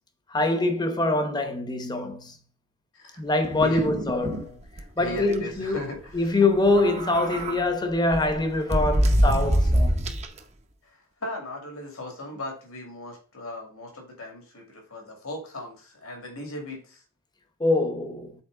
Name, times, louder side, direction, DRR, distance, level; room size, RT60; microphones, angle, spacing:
voice 1, 0.3-2.3 3.2-4.6 5.0-5.8 6.1-10.0 17.6-18.3, left 2 dB, 20° left, 0.8 m, -24 dB
sound 1, 3.4-4.4 4.8-4.9 5.2-5.4 6.6-7.6 8.1-10.4, equal, 30° right, 0.7 m, -24 dB
voice 2, 5.0-6.4 10.8-17.0, left 1 dB, 75° left, 2.2 m, -38 dB
7.2 x 4.2 x 3.8 m
head